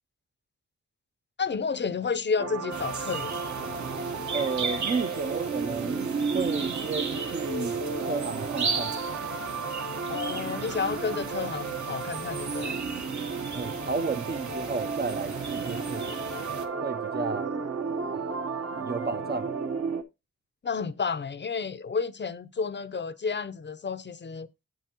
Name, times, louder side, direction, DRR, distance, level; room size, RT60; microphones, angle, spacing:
voice 1, 1.4-3.3 10.1-12.8 20.6-24.5, left 5 dB, 40° left, 0.5 m, -31 dB
sound 1, 2.4-20.0, right 4 dB, 60° right, 1.0 m, -33 dB
sound 2, 2.7-16.7, right 5 dB, 75° right, 1.4 m, -36 dB
voice 2, 4.3-6.1 6.3-9.0 13.5-16.2 16.8-17.5 18.1-18.2 18.7-19.5, right 4 dB, 35° right, 0.5 m, -32 dB
9.2 x 8.2 x 2.8 m
wide cardioid pair, 135°, 29 cm